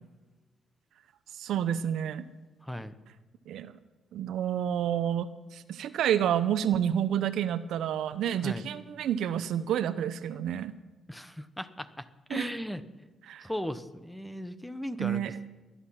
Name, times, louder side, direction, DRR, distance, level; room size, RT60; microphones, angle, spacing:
voice 1, 1.4-2.2 3.5-3.7 4.1-10.7 12.3-12.5 13.3-13.4 15.0-15.3, right 9 dB, 75° right, 13 dB, 0.7 m, -29 dB
voice 2, 2.6-2.9 8.4-8.7 11.1-12.8 13.4-15.5, equal, 5° left, 12 dB, 1.0 m, -37 dB
19.5 x 11.0 x 5.9 m, 1.2 s
cardioid pair, 90°, 0 cm